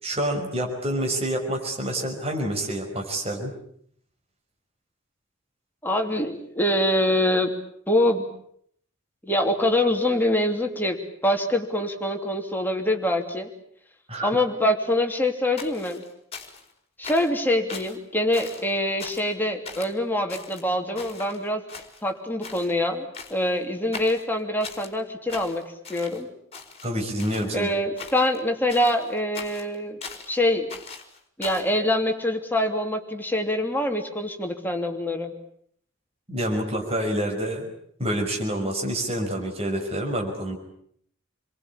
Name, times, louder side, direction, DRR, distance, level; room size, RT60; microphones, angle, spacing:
voice 1, 0.0-3.5 14.1-14.3 26.8-27.7 36.3-37.7 38.0-40.6, right 1 dB, 30° right, 1 dB, 5.5 m, -27 dB
voice 2, 5.8-7.5 7.9-8.3 9.2-11.0 11.2-13.5 14.2-16.0 17.0-21.6 22.0-23.0 23.3-25.6 25.9-26.3 27.5-30.0 30.3-30.7 31.4-35.3, left 1 dB, 10° left, 2 dB, 3.0 m, -24 dB
sound 1, 15.6-16.7 17.0-17.4 17.7-18.0 18.3-18.7 19.0-19.3 19.7-19.9 20.3-21.4 21.7-22.2 22.4-22.7 23.1-23.5 23.9-24.9 25.3-26.2 26.5-27.6 28.0-28.4 28.7-30.4 30.7-31.7, left 5 dB, 30° left, 4.4 m, -40 dB
29.5 x 23.0 x 8.7 m, 0.67 s
head